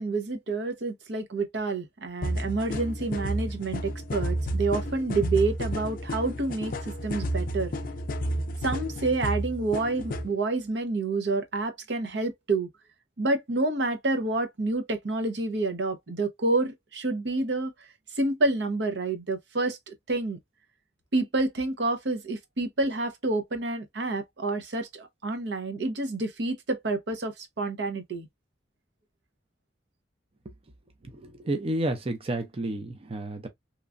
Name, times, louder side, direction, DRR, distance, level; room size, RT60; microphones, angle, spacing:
voice 1, 0.0-6.7 7.0-7.7 8.6-12.7 13.2-17.7 18.2-20.4 21.1-28.3, right 2 dB, 80° right, 0.8 m, -28 dB
sound 1, 2.2-10.3, equal, 50° left, 0.5 m, -31 dB
voice 2, 31.1-33.5, right 1 dB, 35° right, 0.5 m, -31 dB
3.0 x 2.2 x 2.5 m
head